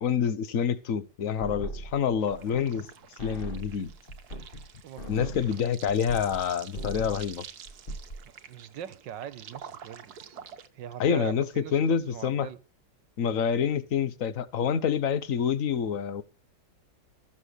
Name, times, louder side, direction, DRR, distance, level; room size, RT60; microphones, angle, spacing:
voice 1, 0.0-2.9 3.2-3.9 5.1-7.4 11.0-12.5 13.2-16.2, left 7 dB, 55° left, 1.3 m, -27 dB
sound 1, 1.4-2.9 3.2-6.5 6.7-7.3 7.7-8.2, right 1 dB, 30° left, 1.7 m, -39 dB
sound 2, 2.2-10.7, right 8 dB, 60° right, 1.6 m, -48 dB
voice 2, 4.8-5.6 8.5-10.4 10.7-12.6, right 10 dB, 85° right, 1.6 m, -41 dB
14.5 x 7.2 x 6.6 m
omnidirectional pair, 1.9 m